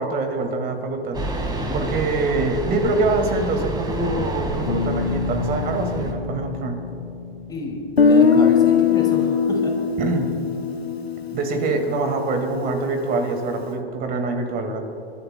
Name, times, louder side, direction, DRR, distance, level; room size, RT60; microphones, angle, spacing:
voice 1, 0.0-6.8 10.0-10.3 11.3-14.8, right 3 dB, 30° right, 5 dB, 2.0 m, -24 dB
sound 1, 1.1-6.1, right 1 dB, 15° right, 1.8 m, -29 dB
Bass guitar, 4.7-8.7, left 5 dB, 65° left, 2.1 m, -30 dB
voice 2, 7.5-9.7, left 2 dB, 15° left, 0 dB, 2.5 m, -30 dB
Guitar, 8.0-11.9, left 6 dB, 85° left, 0.7 m, -19 dB
29.0 x 12.5 x 2.2 m, 2.9 s
figure-of-eight pair, 95°, 30 cm